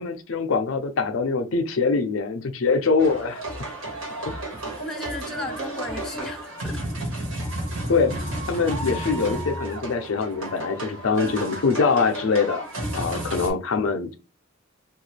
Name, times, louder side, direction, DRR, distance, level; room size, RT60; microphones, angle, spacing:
voice 1, 0.0-3.4 4.3-4.4 7.9-8.1 8.5-12.6 12.9-14.1, left 4 dB, 75° left, 0.5 m, -23 dB
sound 1, 3.0-13.5, right 1 dB, 85° right, 1.4 m, -32 dB
voice 2, 4.8-6.9 13.3-13.6, left 2 dB, ahead, 0.5 m, -36 dB
3.1 x 2.3 x 3.2 m
head